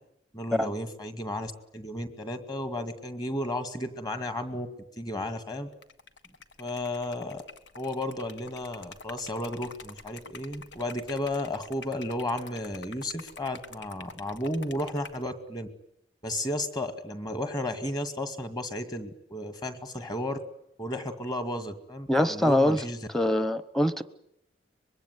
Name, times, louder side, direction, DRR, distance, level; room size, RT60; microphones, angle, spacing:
voice 1, 0.3-4.7 5.0-5.7 6.6-7.4 7.8-15.7 16.2-20.4 20.8-23.0, left 1 dB, 20° left, 2.2 m, -33 dB
Liquid, 5.7-15.3, left 4 dB, 90° left, 1.7 m, -47 dB
voice 2, 22.1-22.8 23.1-24.0, left 1 dB, ahead, 1.0 m, -24 dB
24.5 x 22.0 x 9.6 m
head